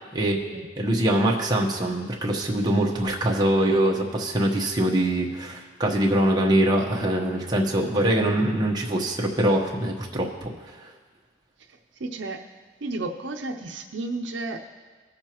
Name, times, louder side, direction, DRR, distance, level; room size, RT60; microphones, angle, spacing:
voice 1, 0.1-10.5, right 1 dB, 20° right, -1 dB, 1.1 m, -23 dB
voice 2, 12.0-12.4 12.8-14.6, right 2 dB, 70° right, 4 dB, 0.6 m, -32 dB
19.0 x 6.6 x 3.0 m, 1.4 s
head